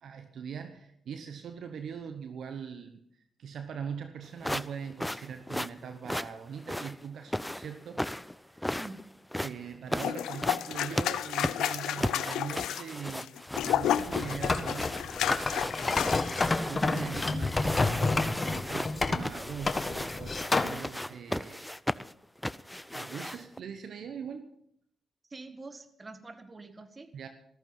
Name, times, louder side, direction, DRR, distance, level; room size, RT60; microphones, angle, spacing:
voice 1, 0.0-3.0 3.4-8.0 8.5-8.6 9.4-13.3 13.6-15.0 16.7-21.8 22.9-24.5 27.1-27.3, right 7 dB, 70° right, 8 dB, 1.1 m, -41 dB
sound 1, 4.4-23.6, left 1 dB, 5° left, 0.6 m, -36 dB
voice 2, 8.7-9.0 16.4-16.9 25.3-27.1, right 3 dB, 35° right, 10 dB, 1.9 m, -46 dB
sound 2, 10.0-16.5 16.8-17.0, left 11 dB, 80° left, 0.5 m, -32 dB
sound 3, 13.5-20.8, left 3 dB, 35° left, 1.4 m, -30 dB
14.0 x 14.0 x 5.5 m, 0.69 s
hypercardioid pair, 45°, 0 cm